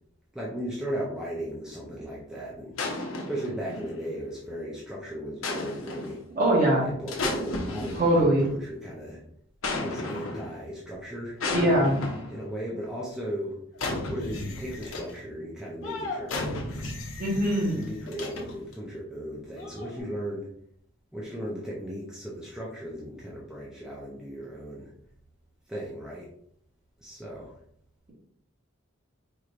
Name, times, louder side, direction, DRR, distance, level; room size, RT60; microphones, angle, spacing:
voice 1, 0.3-2.8 3.3-6.2 6.8-9.2 9.8-11.4 12.3-13.6 14.1-16.9 17.7-20.5 21.1-24.9 25.7-26.3 27.0-27.5, equal, 5° right, -6 dB, 0.5 m, -36 dB
sound 1, 2.8-4.2 5.4-6.2 7.1-8.5 9.6-10.6 11.4-12.4 13.7-15.2 15.8-18.7 19.6-20.0, left 2 dB, 80° left, 0.9 m, -34 dB
voice 2, 6.3-6.9 7.9-8.5 11.5-12.0 17.2-17.8, right 1 dB, 45° right, -4 dB, 1.5 m, -22 dB
4.5 x 3.1 x 2.5 m, 0.69 s
head